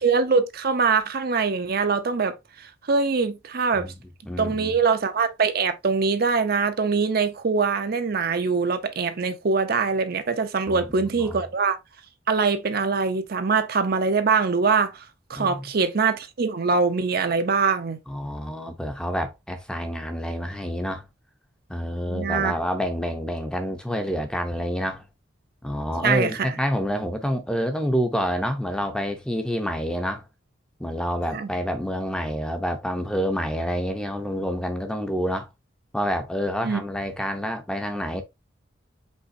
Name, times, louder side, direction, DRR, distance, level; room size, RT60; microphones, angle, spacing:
voice 1, 0.0-3.9 4.4-11.8 12.3-15.0 15.3-18.0 22.1-22.5 26.0-26.5 31.3-31.5 36.6-36.8, right 5 dB, 50° right, 0.6 m, -23 dB
voice 2, 4.3-4.8 10.7-10.8 11.2-11.4 15.3-15.6 18.1-21.0 21.7-25.0 25.6-30.2 30.8-35.5 35.9-38.2, equal, 5° left, 0.6 m, -28 dB
5.4 x 3.6 x 2.6 m
head